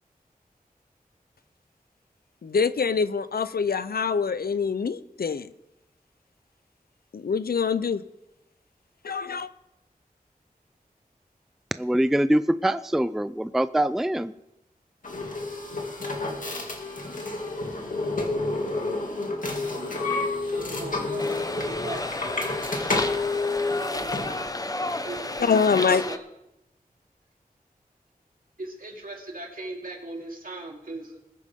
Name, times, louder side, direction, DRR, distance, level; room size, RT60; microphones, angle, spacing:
voice 1, 2.4-5.5 7.1-8.0 9.0-9.5 25.4-26.0, left 5 dB, 85° left, 14 dB, 0.6 m, -24 dB
voice 2, 11.8-14.3, right 1 dB, ahead, 14 dB, 0.4 m, -24 dB
sound 1, 15.0-24.5, left 3 dB, 60° left, 2.4 m, -29 dB
voice 3, 20.4-22.4 23.5-23.6 25.0-26.2 28.6-31.2, right 2 dB, 70° right, 0 dB, 2.6 m, -39 dB
sound 2, 21.2-26.2, left 2 dB, 25° left, 0.7 m, -32 dB
20.5 x 9.3 x 3.6 m, 0.89 s
wide cardioid pair, 65°, 15 cm